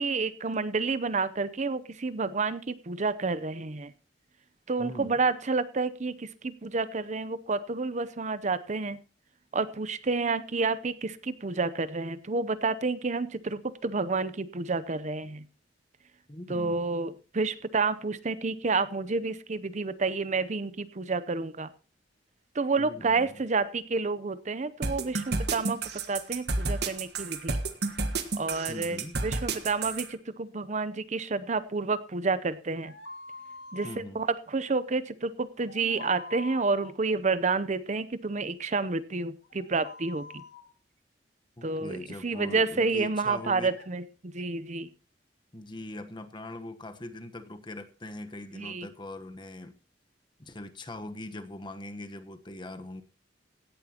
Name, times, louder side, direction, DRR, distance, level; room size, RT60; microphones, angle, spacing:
voice 1, 0.0-3.9 4.7-9.0 9.5-15.4 16.5-21.7 22.5-25.8 26.1-27.6 28.4-32.9 33.7-40.4 41.6-44.9 48.6-48.9, right 4 dB, 40° right, 14 dB, 0.7 m, -29 dB
voice 2, 4.8-5.2 16.3-16.8 22.8-23.3 28.7-29.2 33.8-34.2 41.6-43.7 45.5-49.7 50.4-53.0, left 1 dB, 25° left, 9 dB, 1.2 m, -41 dB
sound 1, 24.8-30.1, right 3 dB, 65° right, 1.6 m, -30 dB
sound 2, 32.7-34.0 35.6-36.9 39.4-40.7 43.4-43.9, left 3 dB, 85° left, 2.1 m, -45 dB
17.0 x 11.0 x 2.9 m, 0.36 s
head